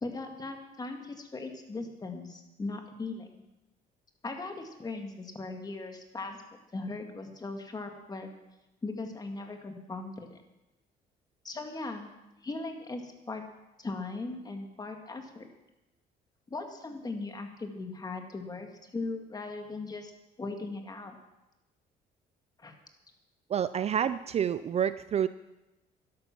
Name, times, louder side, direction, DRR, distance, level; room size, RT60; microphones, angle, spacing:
voice 1, 0.0-3.4 4.2-6.4 6.7-8.3 8.8-10.4 11.4-12.1 12.4-13.4 13.8-15.5 16.5-20.1 20.4-21.2 22.6-22.7, left 3 dB, 25° left, 4 dB, 2.1 m, -38 dB
voice 2, 23.5-25.3, right 9 dB, 40° right, 14 dB, 0.4 m, -28 dB
12.0 x 11.5 x 6.0 m, 0.97 s
cardioid pair, 110°, 17 cm